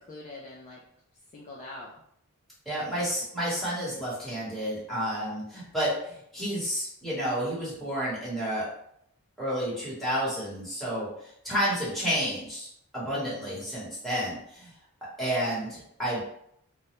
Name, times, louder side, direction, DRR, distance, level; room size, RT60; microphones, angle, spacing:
voice 1, 0.1-0.8 1.3-1.9 2.9-3.1 13.1-13.6, left 2 dB, 35° left, -4 dB, 0.3 m, -44 dB
voice 2, 2.7-8.7 9.4-12.7 12.9-14.7 15.2-16.2, equal, ahead, -9 dB, 1.0 m, -30 dB
2.1 x 2.0 x 2.9 m, 0.71 s
head